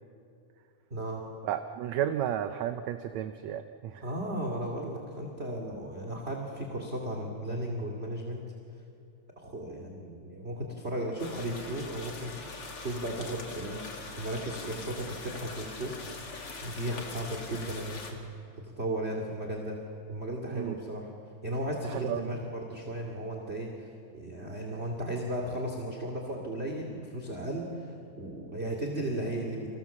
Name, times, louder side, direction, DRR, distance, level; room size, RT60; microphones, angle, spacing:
voice 1, 0.9-1.2 4.0-8.4 9.4-16.0 16.6-18.2 18.6-19.8 20.1-21.1 21.4-29.7, right 1 dB, 20° right, 1 dB, 2.4 m, -35 dB
voice 2, 1.4-4.1 20.5-20.8 21.9-22.3, right 10 dB, 70° right, 8 dB, 1.9 m, -33 dB
sound 1, 11.2-18.1, left 3 dB, 45° left, 3.3 m, -43 dB
30.0 x 26.0 x 7.3 m, 2.5 s
omnidirectional pair, 3.7 m